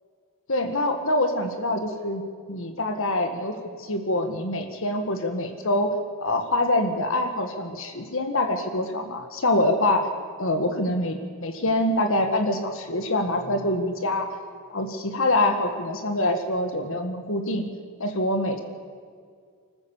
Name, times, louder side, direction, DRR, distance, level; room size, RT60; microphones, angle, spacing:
voice 1, 0.5-2.2 2.5-5.9 6.2-10.1 10.4-14.3 14.7-17.7 18.0-18.6, left 1 dB, 60° left, 6 dB, 1.6 m, -25 dB
25.0 x 14.5 x 7.1 m, 2.1 s
head